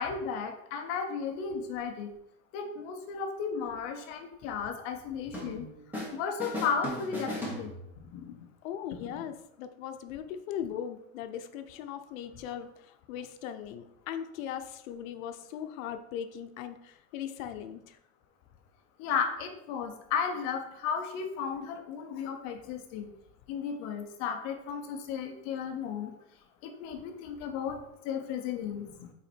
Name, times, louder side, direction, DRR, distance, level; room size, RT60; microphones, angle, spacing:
voice 1, 0.0-2.1 2.5-5.7 6.1-7.7 8.0-8.3 9.0-9.3 19.0-23.1 23.5-26.1 26.6-27.8 28.0-29.1, left 6 dB, 35° left, 6 dB, 0.6 m, -34 dB
sound 1, 5.3-6.1 6.4-8.2, equal, 5° right, 1.0 m, -37 dB
voice 2, 8.6-18.0, left 9 dB, 90° left, 8 dB, 0.7 m, -39 dB
5.6 x 4.2 x 4.3 m, 0.80 s
supercardioid pair, 180°, 39 cm